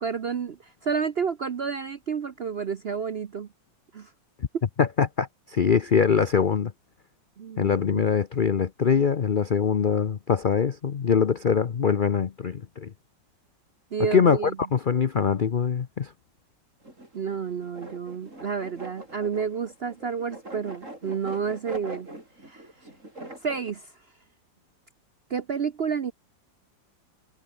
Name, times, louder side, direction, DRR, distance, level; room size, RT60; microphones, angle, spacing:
voice 1, 0.0-3.5 3.9-4.1 7.4-8.1 13.9-14.6 17.1-22.1 22.4-22.6 23.4-23.9 25.3-26.1, right 6 dB, 55° right, 0.6 m, -30 dB
voice 2, 4.8-6.7 7.6-12.9 14.1-16.1, left 6 dB, 80° left, 0.4 m, -23 dB
sound 1, 16.8-23.7, right 1 dB, 40° right, 8.5 m, -43 dB
omnidirectional pair, 2.0 m